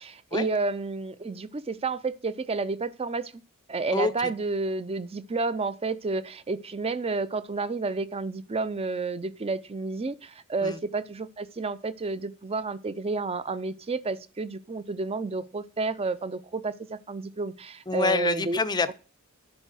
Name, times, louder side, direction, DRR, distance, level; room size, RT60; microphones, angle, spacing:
voice 1, 0.0-3.3 3.7-18.6, right 3 dB, 25° right, 0.5 m, -30 dB
voice 2, 3.9-4.3 10.6-10.8 17.9-18.9, left 3 dB, 20° left, 0.6 m, -27 dB
10.5 x 4.5 x 6.3 m
head